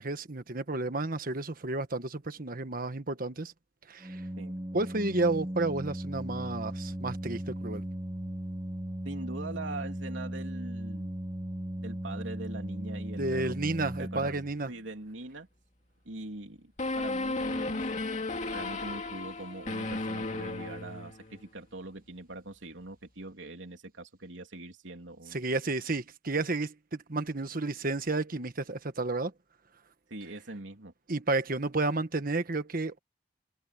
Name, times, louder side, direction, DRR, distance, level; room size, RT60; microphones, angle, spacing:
voice 1, 0.0-3.5 3.9-4.2 4.7-7.8 13.2-14.7 25.3-29.3 31.1-33.0, right 2 dB, 50° right, 1.4 m, -31 dB
Organ, 4.0-14.8, right 1 dB, 15° right, 0.8 m, -37 dB
voice 2, 9.0-11.2 11.8-13.6 14.0-14.3 14.7-15.5 16.0-17.9 18.5-25.5 30.1-30.9, right 2 dB, 85° right, 3.2 m, -42 dB
sound 1, 16.8-21.4, left 2 dB, 40° left, 2.4 m, -34 dB
head